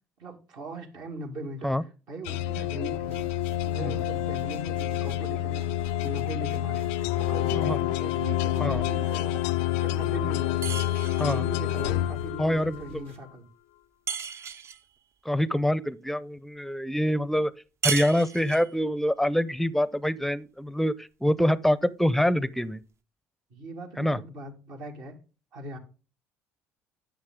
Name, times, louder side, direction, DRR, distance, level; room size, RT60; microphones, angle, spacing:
voice 1, 0.2-1.7 2.1-3.2 3.6-9.4 9.8-10.8 11.3-13.5 23.5-25.2 25.5-25.8, right 2 dB, 65° right, 1.9 m, -39 dB
sound 1, 2.2-12.9, left 13 dB, 75° left, 0.4 m, -28 dB
sound 2, 2.9-13.2, right 3 dB, 90° right, 1.2 m, -52 dB
sound 3, 10.6-11.5 14.1-14.8 17.8-18.8, right 5 dB, 40° right, 0.6 m, -33 dB
voice 2, 12.4-13.1 15.2-17.5 17.8-22.8 24.0-24.2, equal, 5° left, 0.6 m, -25 dB
9.7 x 6.4 x 3.7 m
hypercardioid pair, 60°, 7 cm